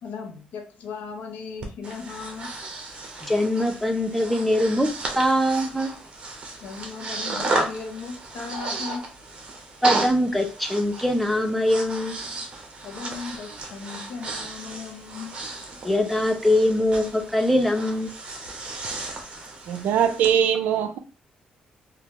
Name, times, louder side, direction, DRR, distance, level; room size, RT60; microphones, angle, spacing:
voice 1, 0.0-2.5 6.6-9.0 12.8-15.3, left 5 dB, 80° left, 0.7 m, -37 dB
Breathing, 1.6-20.3, right 3 dB, 40° right, 0.9 m, -34 dB
voice 2, 3.2-4.9 5.1-5.9 9.8-12.2 15.8-18.1, left 1 dB, 5° left, 0.6 m, -22 dB
voice 3, 19.7-21.0, right 9 dB, 85° right, 0.4 m, -21 dB
3.2 x 2.4 x 3.0 m
cardioid pair, 120°, 3 cm